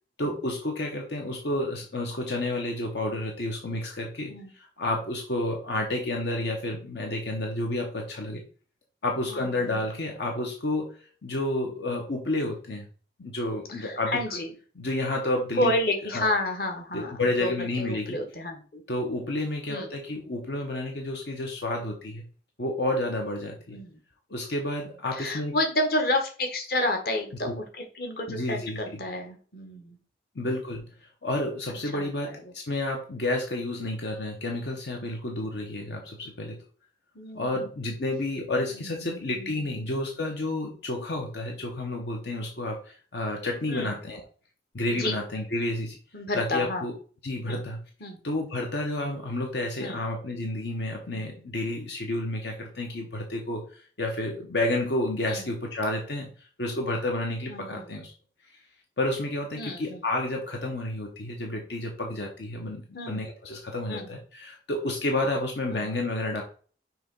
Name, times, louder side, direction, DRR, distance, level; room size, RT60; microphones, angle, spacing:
voice 1, 0.2-8.4 9.0-12.8 13.2-14.4 14.8-15.7 16.1-16.3 16.9-18.2 18.9-22.2 22.6-23.8 24.3-25.6 27.4-27.6 28.3-28.8 30.3-36.6 37.3-44.2 44.7-46.0 46.3-46.9 47.2-47.8 48.2-58.1 59.0-66.4, left 1 dB, 75° left, 2 dB, 0.9 m, -30 dB
voice 2, 9.3-9.8 13.7-14.5 15.6-17.5 17.8-18.8 19.7-20.0 23.7-24.0 25.1-30.0 31.9-32.5 37.1-37.6 38.7-39.7 43.7-43.9 44.9-45.2 46.1-46.8 47.4-47.6 48.0-48.2 49.8-50.0 55.3-55.5 57.5-57.9 59.6-60.0 62.9-63.2 63.9-64.1 65.7-65.9, left 1 dB, 55° left, 3 dB, 1.3 m, -30 dB
6.1 x 3.0 x 5.3 m, 0.41 s
head